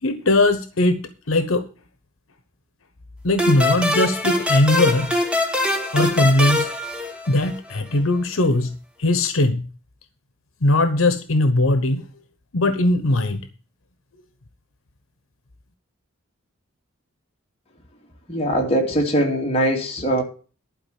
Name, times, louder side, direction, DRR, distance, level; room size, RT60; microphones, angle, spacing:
voice 1, 0.0-1.6 3.2-5.1 5.9-6.7 7.3-9.7 10.6-12.1 12.5-13.5, left 2 dB, 75° left, 1.1 m, -20 dB
sound 1, 3.4-7.7, left 1 dB, 5° right, 1.4 m, -23 dB
voice 2, 18.3-20.2, equal, 30° left, 2.4 m, -21 dB
12.0 x 4.9 x 8.4 m
head